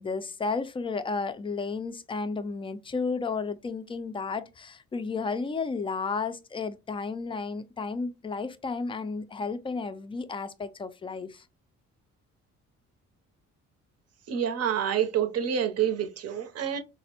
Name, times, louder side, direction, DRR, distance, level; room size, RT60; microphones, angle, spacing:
voice 1, 0.0-11.4, left 4 dB, 20° left, 0.3 m, -32 dB
voice 2, 14.3-16.8, right 9 dB, 55° right, 0.7 m, -27 dB
4.0 x 2.0 x 2.8 m
cardioid pair, 90°, 30 cm